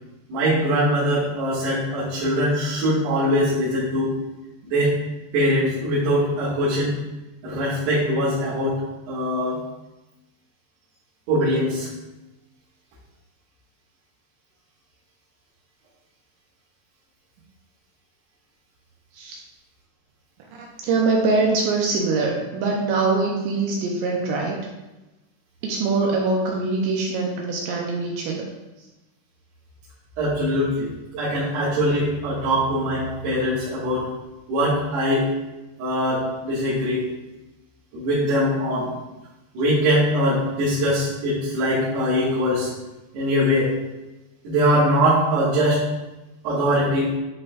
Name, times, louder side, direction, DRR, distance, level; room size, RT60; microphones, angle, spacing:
voice 1, 0.3-4.1 4.6-4.9 5.3-6.9 7.4-8.8 9.1-9.6 11.3-11.9 30.2-30.9 31.2-34.1 34.5-35.3 35.8-37.0 37.9-38.9 39.5-42.7 43.1-43.7 44.4-45.9 46.4-47.1, equal, 65° right, -12 dB, 3.5 m, -22 dB
voice 2, 20.8-24.6 25.6-28.4, right 3 dB, 80° right, -1 dB, 2.6 m, -23 dB
11.0 x 4.8 x 2.4 m, 1.1 s
omnidirectional pair, 5.7 m